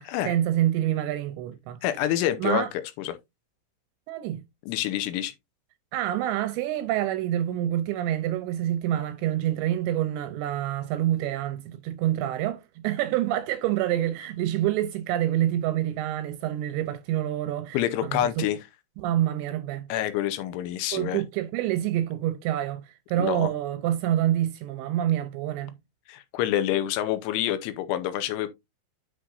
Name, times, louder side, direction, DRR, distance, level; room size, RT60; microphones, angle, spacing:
voice 1, 0.0-1.8 2.4-2.7 4.1-4.4 5.9-18.5 19.0-19.9 20.9-25.7, right 12 dB, 80° right, 2.7 m, -27 dB
voice 2, 1.8-2.7 3.0-3.2 4.7-5.3 17.7-18.6 19.9-21.2 23.2-23.5 26.1-28.5, left 12 dB, 85° left, 3.1 m, -27 dB
9.6 x 6.2 x 2.6 m
omnidirectional pair, 5.6 m